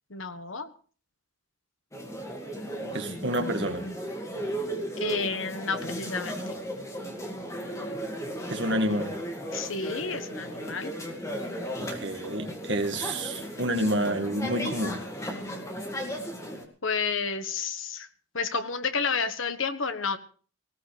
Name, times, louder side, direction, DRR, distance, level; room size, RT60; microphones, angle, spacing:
voice 1, 0.1-0.7 5.0-6.4 9.5-10.9 16.8-18.1 18.3-20.2, left 5 dB, 75° left, 10 dB, 1.4 m, -30 dB
sound 1, 1.9-16.6, equal, 15° left, 2.2 m, -35 dB
voice 2, 2.9-3.8 8.5-9.1 11.8-15.0, right 1 dB, 60° right, 6 dB, 2.0 m, -29 dB
19.0 x 17.0 x 3.4 m, 0.41 s
head